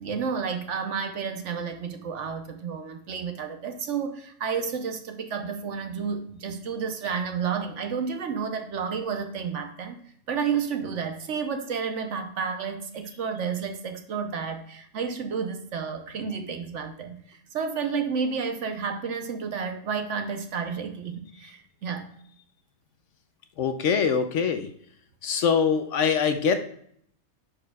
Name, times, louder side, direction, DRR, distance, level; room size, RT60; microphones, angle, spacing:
voice 1, 0.0-9.9 10.3-22.1, right 6 dB, 60° right, 6 dB, 1.1 m, -31 dB
voice 2, 23.6-24.7 25.2-26.6, left 6 dB, 65° left, 8 dB, 0.9 m, -23 dB
9.8 x 4.7 x 2.3 m, 0.66 s
omnidirectional pair, 1.5 m